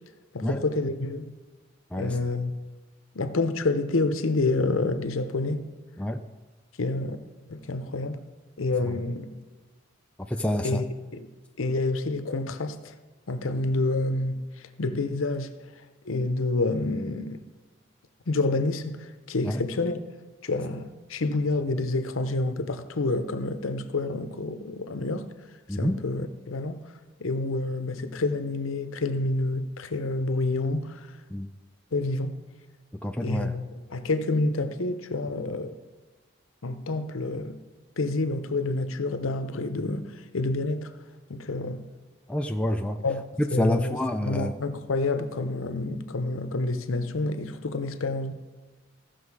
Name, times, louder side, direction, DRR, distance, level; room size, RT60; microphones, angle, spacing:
voice 1, 0.3-1.3 1.9-2.5 3.1-5.6 6.8-7.2 7.5-8.2 8.6-9.3 10.6-10.9 11.1-11.3 11.6-12.9 13.3-15.5 16.1-17.4 18.3-20.0 20.4-25.3 25.7-26.8 27.2-31.1 31.9-32.3 33.2-33.6 33.9-35.8 36.6-37.6 38.0-40.9 41.3-41.8 43.0-43.2 43.5-48.3, left 2 dB, 80° left, 0.8 m, -28 dB
voice 2, 10.3-10.8 19.4-19.6 25.7-26.0 31.3-31.5 33.0-33.5 42.3-43.0 43.6-44.5, left 1 dB, 5° left, 0.4 m, -27 dB
15.5 x 6.2 x 4.7 m
head